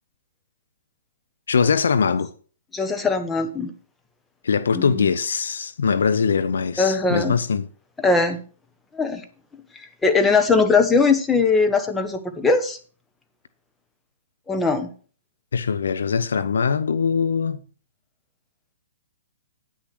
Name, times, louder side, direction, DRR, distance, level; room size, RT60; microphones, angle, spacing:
voice 1, 1.5-2.3 4.4-7.7 15.5-17.6, left 6 dB, 75° left, 0.7 m, -22 dB
voice 2, 2.7-3.7 4.7-5.1 6.8-7.4 8.0-8.4 8.9-9.2 9.7-12.8 14.5-14.9, left 4 dB, 10° left, 1.3 m, -20 dB
9.7 x 6.4 x 6.0 m
hypercardioid pair, 130°, 0 cm